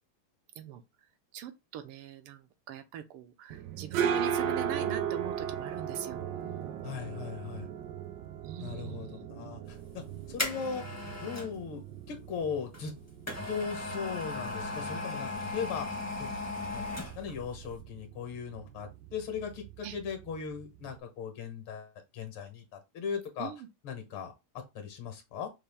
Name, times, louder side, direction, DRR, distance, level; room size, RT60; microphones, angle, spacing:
voice 1, 1.3-6.8 8.4-9.3 19.8-20.0 23.4-23.7, right 10 dB, 90° right, 1.6 m, -42 dB
sound 1, 3.5-21.0, right 8 dB, 70° right, 1.1 m, -38 dB
voice 2, 6.8-7.7 8.6-10.9 11.2-12.9 13.5-16.3 16.7-23.5 23.8-25.5, left 6 dB, 75° left, 2.0 m, -38 dB
sound 2, 9.8-11.6 12.7-17.4 17.7-17.8, left 2 dB, 15° left, 0.5 m, -37 dB
5.6 x 2.4 x 3.4 m
omnidirectional pair, 2.4 m